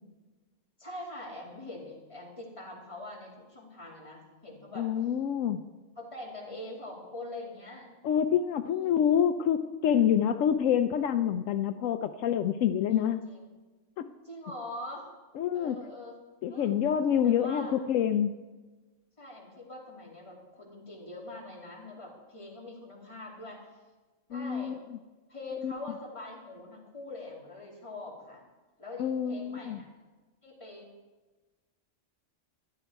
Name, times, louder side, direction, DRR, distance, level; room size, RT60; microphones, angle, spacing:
voice 1, 0.8-4.9 6.0-7.9 8.6-8.9 12.9-13.5 14.2-15.1 15.5-16.2 16.5-16.7 17.2-17.7 19.2-23.6 24.3-24.8 25.3-28.4 28.8-29.9 30.4-30.9, left 2 dB, 25° left, -4 dB, 2.9 m, -43 dB
voice 2, 4.8-5.6 8.0-13.2 14.0-14.1 15.4-15.8 16.4-18.4 24.3-24.8 25.6-25.7 29.0-29.8, left 9 dB, 85° left, 9 dB, 1.0 m, -27 dB
13.0 x 11.0 x 4.6 m, 1.2 s
omnidirectional pair, 1.3 m